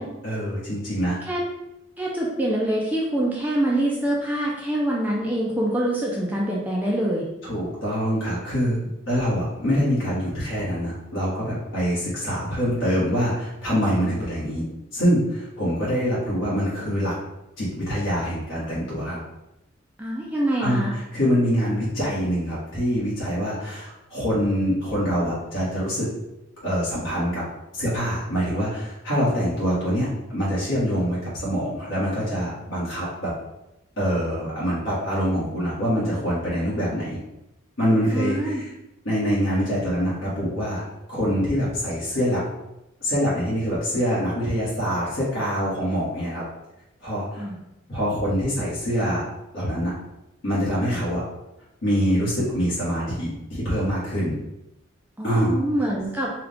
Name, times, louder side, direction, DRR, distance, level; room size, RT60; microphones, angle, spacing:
voice 1, 0.2-1.2 7.4-14.6 14.9-17.1 17.6-19.2 20.6-20.8 21.1-26.1 26.6-27.4 27.7-33.3 34.0-37.2 37.8-38.7 39.0-40.8 41.1-42.4 43.0-46.4 47.0-47.5 47.9-49.3 49.5-49.9 50.4-51.2 51.8-54.3 55.2-55.6, equal, 70° left, -9 dB, 1.5 m, -25 dB
voice 2, 2.0-7.3 14.0-14.2 20.0-20.9 38.1-38.6 47.4-47.6 55.2-56.3, right 1 dB, 10° right, -4 dB, 0.5 m, -25 dB
4.6 x 2.5 x 3.5 m, 0.91 s
head